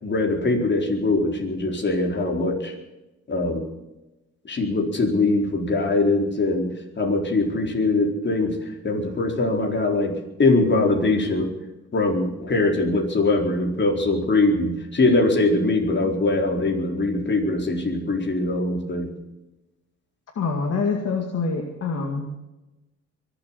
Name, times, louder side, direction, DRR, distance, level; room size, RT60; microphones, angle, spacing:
voice 1, 0.0-2.7 3.3-3.6 4.4-6.7 7.0-10.1 10.4-11.5 11.9-19.1, left 2 dB, 35° left, 2 dB, 4.2 m, -22 dB
voice 2, 20.4-22.4, left 4 dB, 55° left, 2 dB, 2.3 m, -26 dB
23.5 x 8.1 x 7.2 m, 0.99 s
cardioid pair, 90°, 30 cm